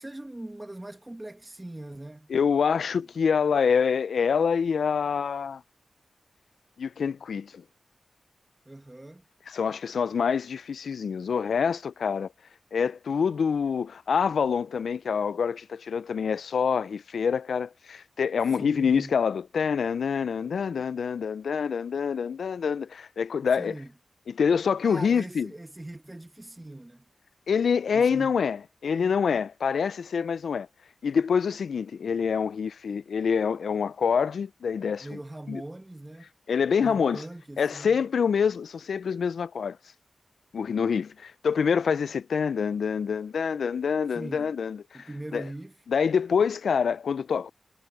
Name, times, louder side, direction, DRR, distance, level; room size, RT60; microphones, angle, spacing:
voice 1, 0.0-2.3 3.0-3.1 8.7-9.2 18.6-19.2 23.6-23.9 24.8-27.0 27.9-28.4 35.0-36.3 36.8-38.0 44.1-44.5 44.9-45.8, right 1 dB, 15° right, 1.3 m, -41 dB
voice 2, 2.3-5.6 6.8-7.6 9.5-12.3 12.7-23.8 24.3-25.5 27.5-30.7 31.0-35.2 35.5-35.6 36.5-37.2 37.6-39.8 40.5-45.4 45.9-47.5, left 6 dB, 75° left, 0.4 m, -26 dB
wide cardioid pair, 160°, 0 cm